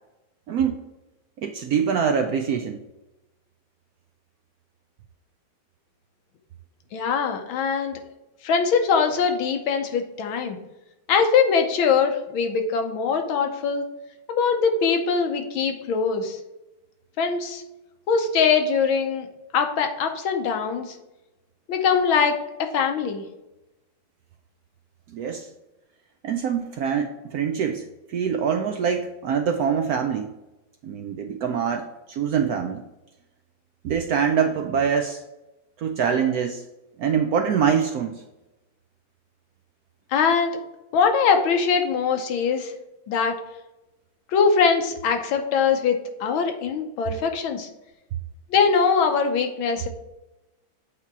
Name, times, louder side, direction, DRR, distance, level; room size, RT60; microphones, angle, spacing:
voice 1, 0.5-0.9 1.4-2.8 25.1-25.5 26.2-30.3 30.8-32.8 33.8-35.2 35.8-36.7 37.0-38.2, right 7 dB, 80° right, 5 dB, 0.8 m, -24 dB
voice 2, 6.9-8.0 8.4-10.6 11.1-13.8 14.3-16.4 17.2-17.6 18.1-19.3 19.5-21.0 21.7-23.2 40.1-40.5 40.9-42.7 43.1-43.4 44.3-47.7 48.5-49.9, left 6 dB, 85° left, 5 dB, 1.7 m, -22 dB
8.1 x 2.9 x 5.9 m, 0.99 s
omnidirectional pair, 2.2 m